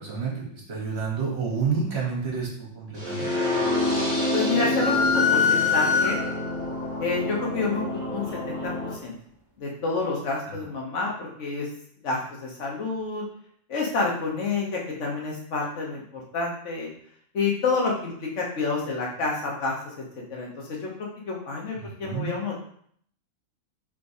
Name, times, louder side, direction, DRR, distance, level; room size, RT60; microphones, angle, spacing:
voice 1, 0.0-3.3 10.4-10.6 21.8-22.3, right 5 dB, 45° right, -3 dB, 1.3 m, -29 dB
sound 1, 3.0-8.9, left 1 dB, 15° left, 1.3 m, -28 dB
voice 2, 4.3-6.2 7.0-9.2 9.6-11.7 12.0-13.2 13.7-16.9 17.3-19.8 20.3-22.6, left 4 dB, 55° left, -2 dB, 1.3 m, -29 dB
sound 2, 4.8-6.6, left 6 dB, 25° right, 0.5 m, -23 dB
4.6 x 3.5 x 2.7 m, 0.63 s
omnidirectional pair, 1.6 m